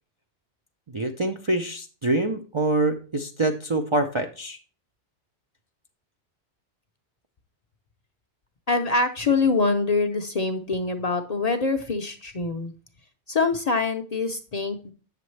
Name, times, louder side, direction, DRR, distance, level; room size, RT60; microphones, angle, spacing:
voice 1, 0.9-4.6, right 2 dB, 40° right, 3 dB, 0.4 m, -25 dB
voice 2, 8.7-12.7 13.3-14.9, left 3 dB, 45° left, 6 dB, 0.6 m, -24 dB
8.5 x 6.7 x 3.2 m, 0.36 s
omnidirectional pair, 1.2 m